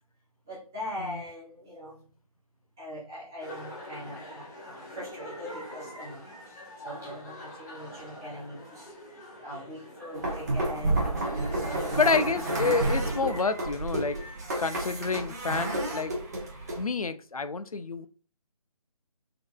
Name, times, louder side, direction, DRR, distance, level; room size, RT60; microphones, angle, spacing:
voice 1, 0.4-2.1 2.8-12.1 12.7-13.7 14.1-14.4, equal, 5° right, -10 dB, 0.5 m, -42 dB
sound 1, 3.4-13.6, left 1 dB, 25° left, 0.9 m, -44 dB
sound 2, 10.1-16.8, right 2 dB, 25° right, 0.8 m, -30 dB
voice 2, 12.0-14.2 14.6-16.1 16.8-18.1, left 4 dB, 70° left, 11 dB, 0.4 m, -28 dB
3.7 x 3.6 x 2.3 m, 0.39 s
figure-of-eight pair, 155°, 19 cm